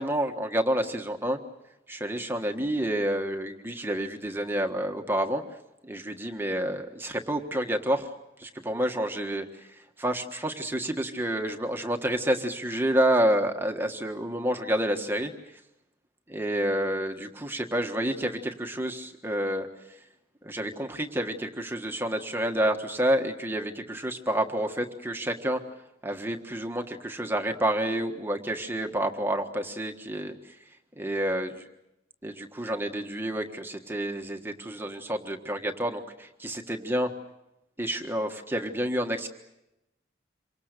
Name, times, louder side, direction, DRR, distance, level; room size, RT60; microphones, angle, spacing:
voice 1, 0.0-1.4 1.9-5.4 5.8-8.1 8.4-15.6 16.3-20.0 20.4-25.6 26.0-30.6 31.0-31.5 32.2-37.1 37.8-39.3, right 1 dB, 10° right, 3 dB, 1.5 m, -29 dB
27.5 x 25.0 x 6.7 m, 0.90 s
head